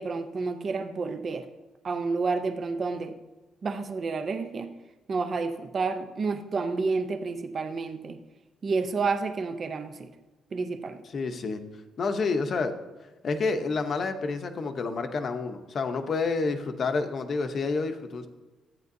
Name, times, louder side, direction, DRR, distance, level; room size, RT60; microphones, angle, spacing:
voice 1, 0.0-1.5 1.8-3.1 3.6-4.8 5.1-8.2 8.6-10.1 10.5-11.0, right 4 dB, 35° right, 7 dB, 0.6 m, -30 dB
voice 2, 11.1-11.6 12.0-12.7 13.2-18.3, left 4 dB, 35° left, 7 dB, 0.8 m, -29 dB
13.5 x 9.3 x 2.7 m, 1.2 s
cardioid pair, 170°, 0 cm